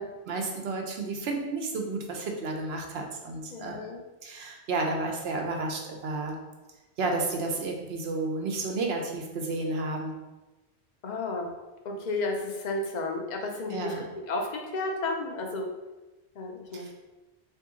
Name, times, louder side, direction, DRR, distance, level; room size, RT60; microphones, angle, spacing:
voice 1, 0.3-3.8 4.2-6.4 7.0-10.1 13.7-14.0 16.7-16.9, right 3 dB, 70° right, 2 dB, 0.9 m, -31 dB
voice 2, 3.5-4.0 11.0-11.5 11.8-15.7 16.3-16.9, left 2 dB, 50° left, 2 dB, 0.6 m, -32 dB
3.8 x 2.8 x 3.6 m, 1.1 s
omnidirectional pair, 1.1 m